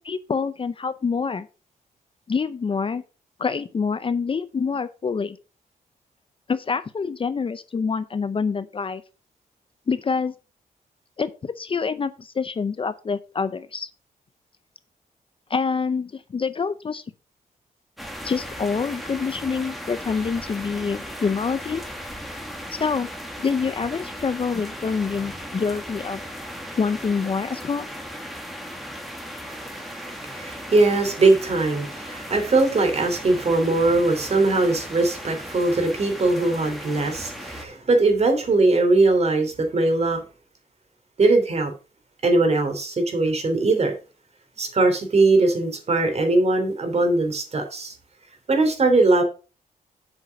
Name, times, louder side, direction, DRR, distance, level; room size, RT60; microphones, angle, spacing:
voice 1, 0.0-1.5 2.3-3.0 3.4-5.4 6.5-9.0 9.9-10.3 11.2-13.9 15.5-17.0 18.2-21.8 22.8-23.1 23.4-26.2 26.8-27.9, left 5 dB, 35° left, 0.6 m, -26 dB
sound 1, 18.0-37.6, equal, ahead, 1.9 m, -37 dB
voice 2, 29.5-40.2 41.2-41.7 42.2-43.9 44.6-47.9 48.5-49.2, right 2 dB, 45° right, 3.2 m, -20 dB
7.9 x 5.7 x 5.9 m
cardioid pair, 100°, 15 cm